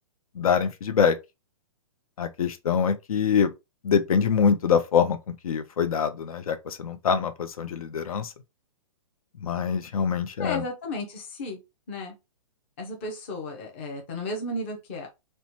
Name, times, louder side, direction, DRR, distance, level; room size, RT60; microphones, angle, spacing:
voice 1, 0.4-1.2 2.2-3.5 3.8-8.3 9.4-10.6, left 7 dB, 80° left, 0.5 m, -24 dB
voice 2, 10.4-11.6 11.9-12.1 12.8-15.1, left 2 dB, 20° left, 0.5 m, -34 dB
2.9 x 2.2 x 2.7 m
hypercardioid pair, 175°, 18 cm